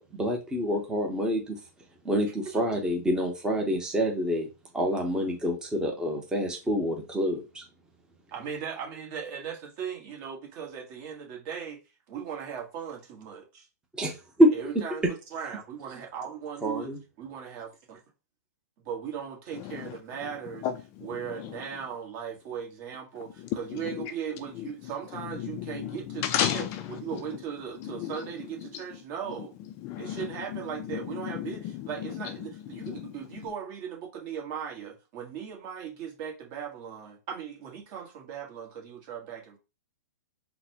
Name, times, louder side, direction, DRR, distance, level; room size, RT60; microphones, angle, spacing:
voice 1, 0.0-1.6 2.0-7.6 14.0-14.5 16.6-17.0, equal, 10° right, 0.8 m, -27 dB
voice 2, 8.3-11.8 12.1-13.7 14.5-16.9 17.2-18.0 18.8-20.6 21.0-26.3 26.5-26.6 27.0-29.5 30.0-39.6, right 8 dB, 40° right, 1.5 m, -38 dB
voice 3, 19.5-21.6 23.4-24.1 24.5-27.4 27.7-28.8 29.3-33.5, left 10 dB, 30° left, 0.4 m, -35 dB
4.0 x 2.2 x 2.8 m
hypercardioid pair, 135°, 9 cm